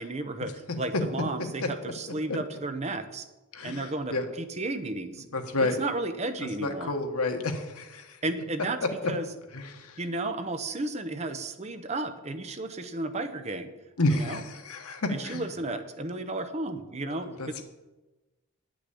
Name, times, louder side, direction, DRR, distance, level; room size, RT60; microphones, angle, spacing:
voice 1, 0.0-3.3 3.6-5.2 5.6-7.0 8.2-9.3 10.0-13.7 14.1-14.4 15.1-17.6, right 2 dB, 30° right, 8 dB, 0.8 m, -33 dB
voice 2, 5.3-5.8 6.6-8.0 9.5-9.7 14.0-15.4 17.4-17.6, left 2 dB, 90° left, 5 dB, 1.4 m, -29 dB
9.9 x 6.1 x 8.4 m, 1.1 s
head